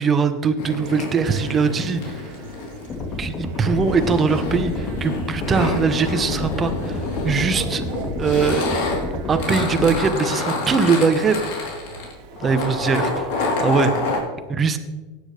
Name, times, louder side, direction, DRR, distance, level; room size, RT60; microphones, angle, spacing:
voice 1, 0.0-2.2 3.2-7.9 8.2-8.8 9.3-11.7 12.4-13.3 13.6-13.9 14.5-14.8, right 5 dB, 25° right, 9 dB, 1.2 m, -21 dB
sound 1, 0.6-14.2, left 3 dB, 65° left, 3.6 m, -28 dB
Chatter / Bark / Livestock farm animals working animals, 0.7-14.2, right 9 dB, 60° right, 0.9 m, -41 dB
sound 2, 2.9-9.9, left 2 dB, 35° left, 2.0 m, -30 dB
16.5 x 9.9 x 3.5 m, 1.2 s
hypercardioid pair, 100°, 0 cm